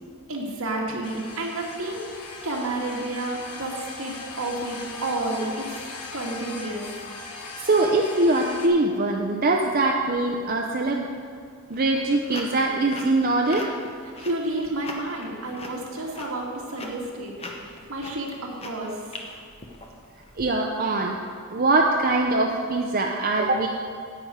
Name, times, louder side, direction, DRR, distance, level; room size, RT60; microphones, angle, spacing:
voice 1, 0.3-5.8 6.1-6.9 14.2-17.3 17.6-19.2, right 2 dB, 70° right, -2 dB, 2.0 m, -31 dB
sound 1, 1.0-8.7, left 3 dB, 80° left, 1.1 m, -39 dB
voice 2, 7.3-11.1 11.7-13.7 20.4-21.1 21.5-23.7, right 2 dB, 40° right, 0 dB, 0.6 m, -22 dB
sound 2, 11.7-20.3, left 2 dB, 25° left, 0.9 m, -40 dB
10.0 x 8.7 x 5.0 m, 2.2 s
head